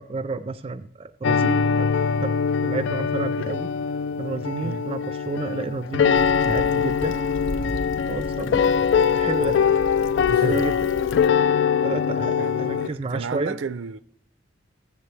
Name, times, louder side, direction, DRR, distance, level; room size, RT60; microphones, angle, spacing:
voice 1, 0.0-1.9 2.2-2.4 2.6-3.7 4.2-7.2 8.1-8.8 9.1-9.6 10.4-10.9 11.5-13.6, right 3 dB, 30° right, 0.4 m, -31 dB
sound 1, 1.2-12.9, left 7 dB, 65° left, 0.3 m, -22 dB
Stream / Traffic noise roadway noise / Trickle dribble, 6.1-11.3, equal, 85° left, 0.8 m, -36 dB
voice 2, 10.3-10.7 12.4-14.0, right 4 dB, 80° right, 0.5 m, -32 dB
16.5 x 7.4 x 3.2 m
head